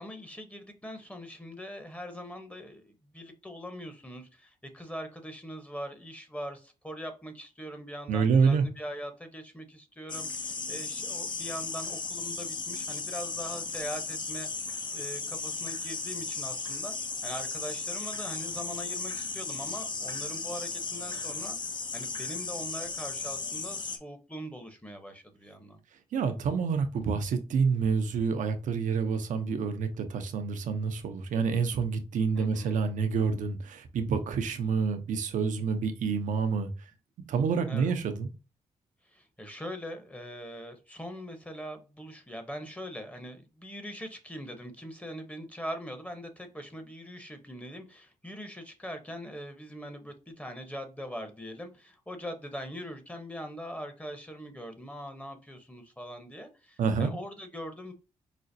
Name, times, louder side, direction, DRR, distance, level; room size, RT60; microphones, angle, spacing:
voice 1, 0.0-14.5 14.9-16.9 17.2-21.6 21.9-25.8 32.3-32.8 37.7-37.9 39.0-57.9, equal, 10° left, 0.9 m, -42 dB
voice 2, 8.1-8.6 26.1-36.7 37.3-38.3 56.8-57.1, right 5 dB, 70° right, 0.6 m, -28 dB
sound 1, 10.1-24.0, left 4 dB, 35° left, 0.6 m, -36 dB
5.0 x 2.1 x 2.6 m
supercardioid pair, 55°, 13 cm